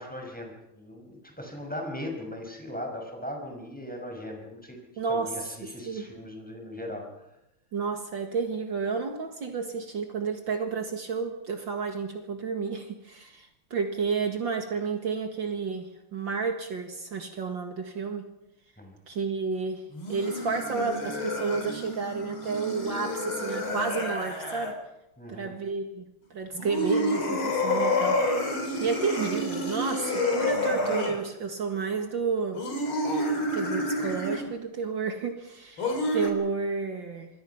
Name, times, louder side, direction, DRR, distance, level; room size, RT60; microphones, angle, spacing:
voice 1, 0.0-4.8 5.1-7.3 18.8-19.0 25.2-25.5, left 1 dB, 5° left, 1 dB, 5.8 m, -39 dB
voice 2, 5.0-5.3 5.9-6.0 7.7-18.3 19.1-24.7 25.3-28.2 28.8-32.6 33.5-37.3, right 5 dB, 60° right, 5 dB, 2.5 m, -31 dB
sound 1, 19.9-24.7 26.5-31.2 32.5-34.5 35.8-36.3, left 1 dB, 70° left, 4.4 m, -29 dB
26.5 x 22.0 x 5.8 m, 0.90 s
omnidirectional pair, 2.4 m